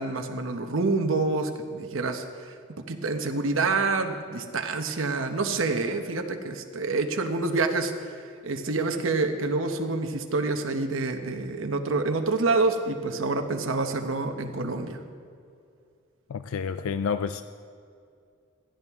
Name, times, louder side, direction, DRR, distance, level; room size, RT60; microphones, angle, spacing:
voice 1, 0.0-8.2 8.4-15.0, right 3 dB, 70° right, 5 dB, 0.9 m, -27 dB
voice 2, 16.3-17.4, left 6 dB, 80° left, 11 dB, 0.4 m, -29 dB
16.5 x 12.5 x 3.6 m, 2.4 s
head